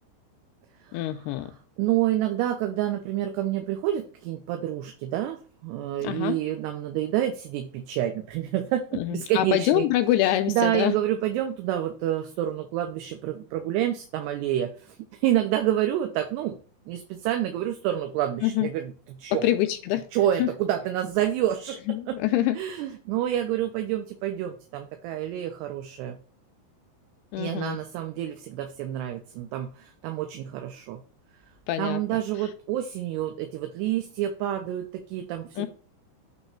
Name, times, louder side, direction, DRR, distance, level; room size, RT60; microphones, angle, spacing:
voice 1, 0.9-1.5 6.0-6.4 8.9-11.0 18.4-18.7 19.3-20.1 20.4-20.5 21.9-22.6 27.3-27.8 31.7-32.0 35.6-35.7, left 13 dB, 85° left, 8 dB, 2.4 m, -25 dB
voice 2, 1.8-9.9 10.5-16.6 16.9-18.9 19.2-19.5 20.1-21.8 22.1-22.2 22.6-26.2 27.4-31.0 31.8-35.7, right 12 dB, 80° right, 5 dB, 2.7 m, -28 dB
9.0 x 3.0 x 4.4 m, 0.40 s
omnidirectional pair, 4.9 m